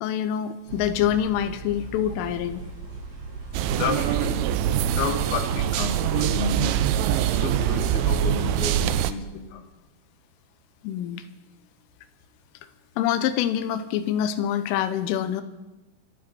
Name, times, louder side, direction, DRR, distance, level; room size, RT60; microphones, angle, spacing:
voice 1, 0.0-2.6 10.8-11.3 13.0-15.4, left 10 dB, 90° left, 11 dB, 3.4 m, -25 dB
sound 1, 0.7-8.6, right 3 dB, 40° right, 3.9 m, -39 dB
sound 2, 3.5-9.1, right 10 dB, 80° right, 2.8 m, -24 dB
voice 2, 3.8-4.5 4.9-6.8 7.3-9.7, left 5 dB, 65° left, 5 dB, 2.9 m, -31 dB
27.0 x 9.7 x 4.3 m, 1.1 s
omnidirectional pair, 5.6 m